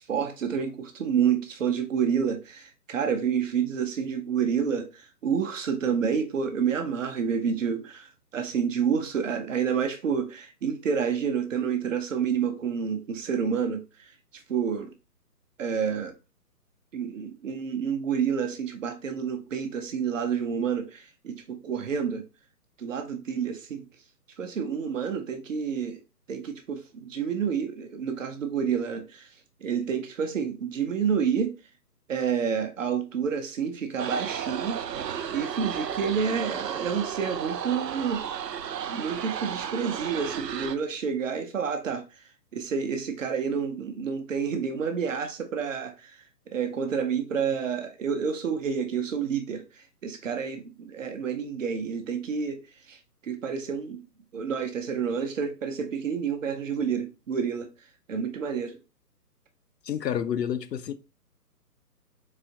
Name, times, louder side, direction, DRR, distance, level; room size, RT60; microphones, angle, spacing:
voice 1, 0.1-14.1 14.5-14.9 15.6-16.1 16.9-22.2 22.8-23.8 24.4-26.0 26.3-29.3 29.6-31.5 32.1-35.0 35.3-38.2 38.9-42.2 42.5-52.6 52.9-53.0 53.2-54.0 54.3-57.7 58.1-58.8, right 7 dB, 50° right, 0.8 m, -29 dB
sound 1, 34.0-40.8, right 8 dB, 90° right, 0.6 m, -33 dB
voice 2, 59.9-60.9, left 9 dB, 80° left, 0.7 m, -29 dB
4.1 x 2.8 x 2.8 m
hypercardioid pair, 150°, 49 cm